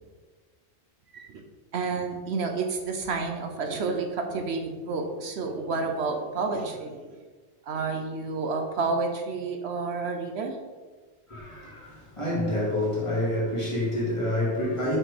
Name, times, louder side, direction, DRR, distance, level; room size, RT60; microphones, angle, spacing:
voice 1, 1.1-1.4 1.7-7.2 7.7-10.6, right 4 dB, 70° right, 4 dB, 1.0 m, -30 dB
voice 2, 11.3-15.0, left 1 dB, 25° left, -6 dB, 2.4 m, -28 dB
6.1 x 4.6 x 4.8 m, 1.4 s
omnidirectional pair, 1.1 m